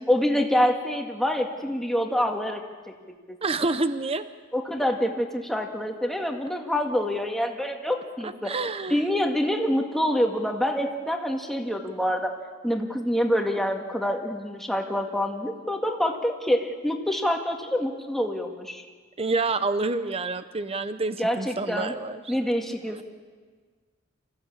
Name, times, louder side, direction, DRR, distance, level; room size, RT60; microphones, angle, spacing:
voice 1, 0.0-2.6 4.5-8.5 8.9-12.3 12.6-18.8 21.2-21.9 22.3-23.0, equal, ahead, 2 dB, 2.0 m, -26 dB
voice 2, 3.4-4.3 8.2-9.0 19.2-22.3, right 3 dB, 30° right, 11 dB, 0.7 m, -28 dB
27.0 x 15.5 x 8.5 m, 1.5 s
head